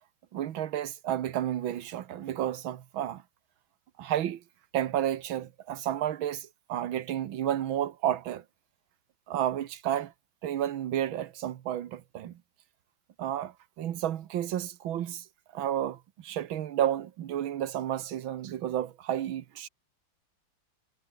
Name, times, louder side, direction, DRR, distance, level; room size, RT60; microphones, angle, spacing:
voice 1, 0.3-3.2 4.0-4.4 4.7-8.4 9.3-10.1 10.4-12.4 13.2-15.2 15.5-19.7, right 11 dB, 85° right, 1.9 m, -31 dB
omnidirectional pair, 2.1 m